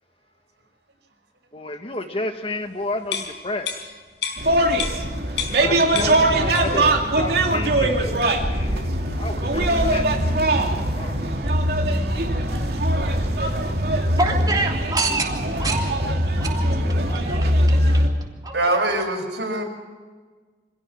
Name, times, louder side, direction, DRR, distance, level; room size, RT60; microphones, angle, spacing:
voice 1, 1.5-3.9 5.6-6.2 6.6-6.8 7.2-11.3, left 2 dB, 30° left, 6 dB, 1.6 m, -32 dB
sound 1, 3.1-5.7 6.0-6.9 7.2-7.4, left 7 dB, 80° left, 4.7 m, -31 dB
sound 2, 4.4-18.1, right 1 dB, 60° right, 2.6 m, -21 dB
voice 2, 5.9-7.0 14.2-18.1 18.4-18.8, right 2 dB, 20° right, 0 dB, 3.1 m, -28 dB
voice 3, 18.5-19.6, right 2 dB, 85° right, 2 dB, 5.7 m, -23 dB
25.5 x 16.5 x 6.1 m, 1.4 s
head